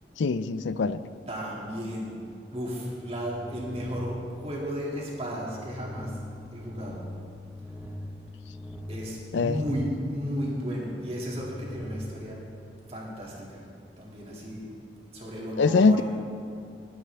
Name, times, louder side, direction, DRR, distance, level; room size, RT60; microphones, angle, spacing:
voice 1, 0.2-1.0 9.3-9.6 15.6-16.0, left 4 dB, 90° left, 15 dB, 0.4 m, -22 dB
voice 2, 1.3-2.2 2.5-6.1 6.5-7.0 8.9-12.4 12.9-13.6 14.0-14.7 15.1-16.0, equal, 35° right, -4 dB, 2.3 m, -34 dB
sound 1, 2.5-13.2, left 1 dB, 5° right, 0.8 m, -43 dB
20.5 x 8.6 x 3.4 m, 2.6 s
head